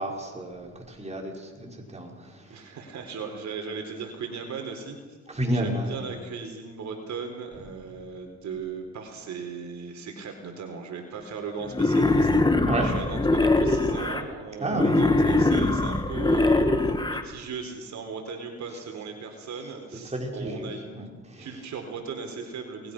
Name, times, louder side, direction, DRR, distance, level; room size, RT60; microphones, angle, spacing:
voice 1, 0.0-2.7 5.3-6.1 12.6-12.9 14.6-15.0 20.0-20.7 20.9-21.5, right 1 dB, 20° right, 0 dB, 5.5 m, -31 dB
voice 2, 2.5-5.0 5.5-12.3 12.8-21.1 21.4-22.9, right 5 dB, 70° right, 4 dB, 4.2 m, -37 dB
Wild animals, 11.7-14.2 14.7-17.2, left 2 dB, 15° left, 2.0 m, -22 dB
28.0 x 20.5 x 6.3 m, 1.4 s
cardioid pair, 90°, 30 cm